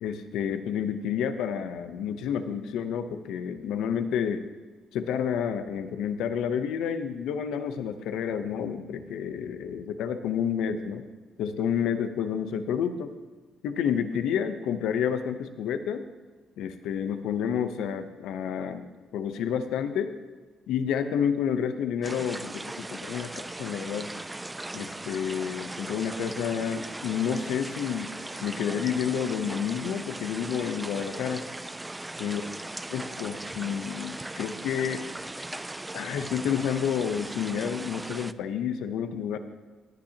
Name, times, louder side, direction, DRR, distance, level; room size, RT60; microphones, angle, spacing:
voice 1, 0.0-4.4 4.9-11.0 11.4-13.1 13.6-16.0 16.6-20.2 20.7-24.1 24.7-28.1 28.4-31.5 32.2-32.4 32.9-35.1 35.9-39.4, left 8 dB, 85° left, 9 dB, 0.7 m, -30 dB
sound 1, 22.0-38.3, right 2 dB, 15° right, 0.3 m, -38 dB
16.5 x 10.5 x 2.9 m, 1.4 s
cardioid pair, 90°, 0 cm